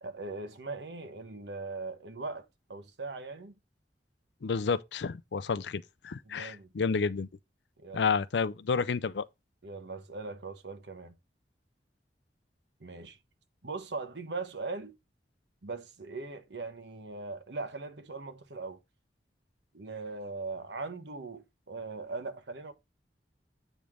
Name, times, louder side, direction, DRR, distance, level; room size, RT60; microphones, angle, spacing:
voice 1, 0.0-3.5 6.3-6.7 7.8-8.0 9.6-11.1 12.8-13.2 13.6-14.9 15.6-18.8 19.7-22.7, right 3 dB, 75° right, 1.2 m, -40 dB
voice 2, 4.4-7.3 7.9-9.3, left 5 dB, 75° left, 0.5 m, -30 dB
8.2 x 5.2 x 3.6 m
head